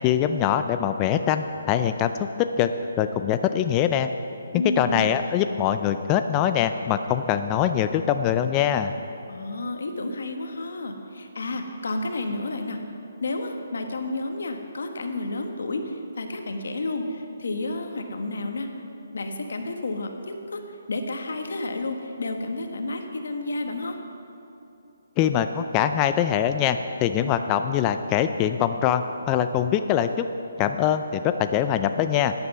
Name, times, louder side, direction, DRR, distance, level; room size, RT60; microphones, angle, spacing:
voice 1, 0.0-2.7 3.0-4.1 4.5-8.9 25.2-30.3 30.6-32.3, left 9 dB, 20° left, 8 dB, 0.3 m, -23 dB
voice 2, 4.5-5.0 9.3-12.8 13.2-18.7 19.1-20.6 20.9-24.0, left 2 dB, 75° left, 4 dB, 1.5 m, -31 dB
14.0 x 9.7 x 5.5 m, 2.8 s
hypercardioid pair, 165°, 0 cm